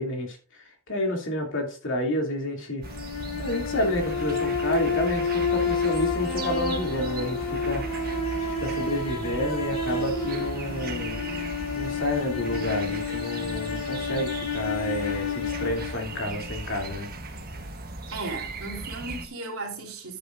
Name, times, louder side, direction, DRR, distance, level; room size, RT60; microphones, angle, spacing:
voice 1, 0.0-2.9 3.4-7.8 8.4-11.2 11.7-17.1, left 1 dB, 55° left, 2.7 m, -30 dB
sound 1, 2.8-17.0, left 4 dB, 80° left, 2.5 m, -30 dB
sound 2, 2.8-19.3, right 3 dB, 45° right, 1.4 m, -37 dB
voice 2, 18.1-20.2, right 3 dB, 70° right, 3.5 m, -35 dB
10.5 x 9.1 x 2.5 m
head